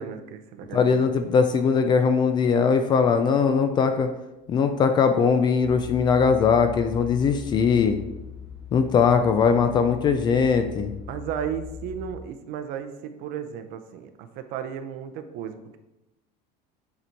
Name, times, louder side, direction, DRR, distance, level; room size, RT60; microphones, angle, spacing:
voice 1, 0.0-1.0 11.1-15.8, right 8 dB, 50° right, 8 dB, 0.7 m, -34 dB
voice 2, 0.7-4.1 4.5-8.0 8.7-10.9, left 6 dB, 25° left, 8 dB, 0.4 m, -20 dB
sound 1, 5.6-12.1, left 6 dB, 10° right, 1.3 m, -40 dB
6.9 x 4.2 x 4.6 m, 0.96 s
cardioid pair, 180°, 19 cm